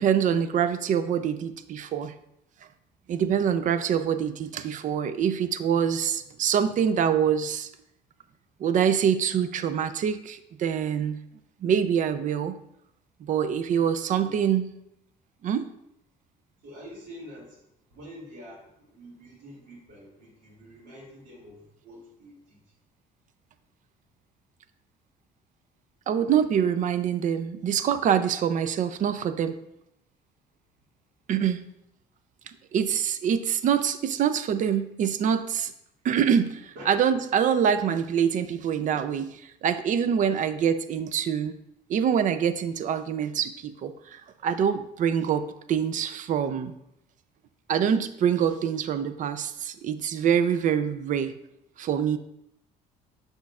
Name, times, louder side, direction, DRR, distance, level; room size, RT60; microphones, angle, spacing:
voice 1, 0.0-2.1 3.1-7.7 8.6-11.2 11.6-12.6 13.2-14.7 15.4-15.7 26.1-29.6 31.3-31.6 32.7-35.7 36.0-41.5 41.9-46.7 47.7-51.3 51.8-52.2, right 8 dB, 50° right, 11 dB, 0.5 m, -25 dB
voice 2, 16.6-17.6 17.9-22.7 36.8-36.9 40.3-40.4, equal, 80° right, -8 dB, 2.1 m, -46 dB
6.5 x 6.2 x 2.4 m, 0.81 s
cardioid pair, 110°, 17 cm